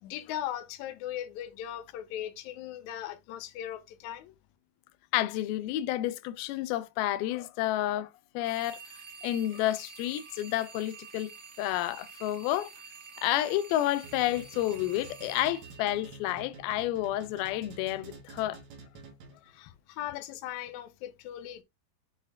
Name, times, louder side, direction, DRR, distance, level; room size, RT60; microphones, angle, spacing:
voice 1, 0.0-4.3 19.5-21.6, left 11 dB, 70° left, 1.8 m, -39 dB
voice 2, 5.1-8.1 8.4-8.8 9.2-11.3 11.6-12.7 13.2-18.6, left 14 dB, 90° left, 2.5 m, -30 dB
sound 1, 8.4-16.6, right 5 dB, 65° right, 0.9 m, -49 dB
sound 2, 14.0-19.6, right 4 dB, 90° right, 3.4 m, -49 dB
7.4 x 4.3 x 3.5 m
omnidirectional pair, 4.2 m